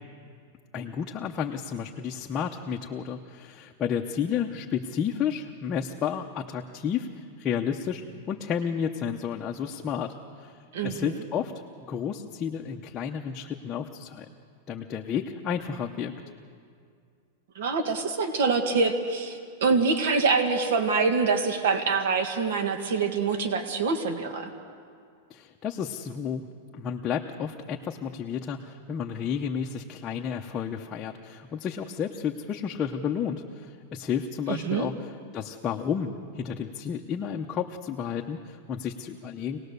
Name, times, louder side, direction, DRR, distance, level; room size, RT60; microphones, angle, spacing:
voice 1, 0.7-11.5 11.9-14.3 14.7-16.1 25.3-39.6, left 7 dB, 20° left, 1 dB, 0.7 m, -32 dB
voice 2, 10.7-11.1 17.5-24.5 34.5-34.9, right 4 dB, 70° right, 6 dB, 1.7 m, -25 dB
26.5 x 18.5 x 6.7 m, 2.2 s
supercardioid pair, 165°, 0 cm